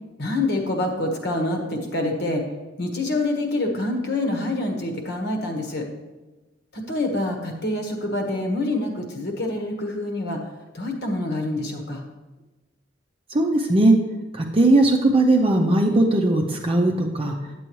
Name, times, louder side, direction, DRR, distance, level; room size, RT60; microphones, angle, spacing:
voice 1, 0.2-2.4 2.8-5.9 6.7-10.4 10.7-12.0, left 2 dB, 60° left, 3 dB, 1.3 m, -26 dB
voice 2, 13.3-13.9 14.4-17.3, right 2 dB, 30° right, 1 dB, 0.6 m, -18 dB
9.2 x 7.6 x 3.1 m, 1.2 s
head